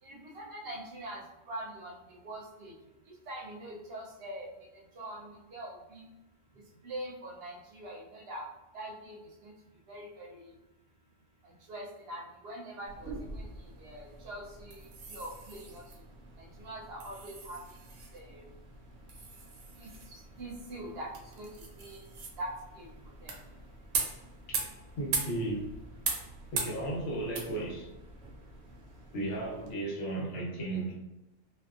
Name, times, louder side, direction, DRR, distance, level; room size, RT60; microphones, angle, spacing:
voice 1, 0.0-1.2 1.5-1.9 2.2-2.7 3.3-4.5 5.0-6.0 6.8-8.4 8.7-9.5 9.9-10.4 11.7-13.4 13.8-14.8 15.1-15.8 16.4-17.6 18.3-18.4 19.8-21.1 21.4-21.5 21.8-22.0 22.4-22.5 22.8-22.9 23.2-23.3, right 1 dB, 65° right, -2 dB, 0.7 m, -43 dB
sound 1, 12.9-29.7, right 4 dB, 90° right, 0.9 m, -41 dB
voice 2, 25.0-25.7 26.5-27.9 29.1-31.0, right 2 dB, 75° left, -3 dB, 1.1 m, -35 dB
2.7 x 2.2 x 2.3 m, 0.97 s
omnidirectional pair, 1.3 m